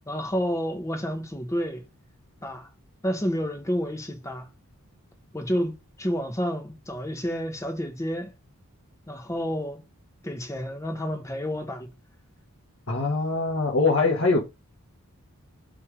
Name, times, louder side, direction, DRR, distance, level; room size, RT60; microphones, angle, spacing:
voice 1, 0.1-1.8 2.4-2.7 3.0-4.5 5.3-8.3 9.1-9.8 10.2-11.9, equal, 15° left, 0.9 m, -30 dB
voice 2, 12.9-14.4, left 3 dB, 60° left, 1.4 m, -22 dB
5.8 x 3.5 x 4.8 m
head